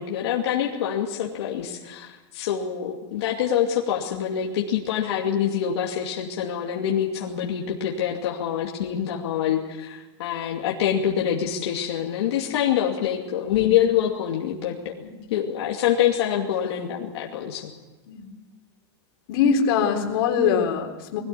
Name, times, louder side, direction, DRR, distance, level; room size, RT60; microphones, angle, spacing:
voice 1, 0.0-14.9 15.3-17.7, left 9 dB, 75° left, -2 dB, 2.6 m, -25 dB
voice 2, 19.3-21.2, left 6 dB, 55° left, 3 dB, 3.8 m, -23 dB
22.0 x 17.0 x 8.5 m, 1.2 s
supercardioid pair, 160°, 14 cm